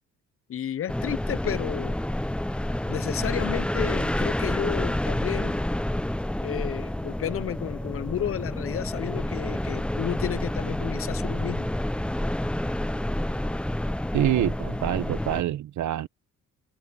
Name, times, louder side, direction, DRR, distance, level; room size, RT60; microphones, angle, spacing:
voice 1, 0.5-2.0 2.9-5.6 6.4-11.7, left 10 dB, 45° left, 0.7 m, -32 dB
sound 1, 0.9-15.4, left 1 dB, 5° left, 0.6 m, -29 dB
voice 2, 14.1-16.1, right 12 dB, 70° right, 1.1 m, -26 dB
cardioid pair, 90°, 30 cm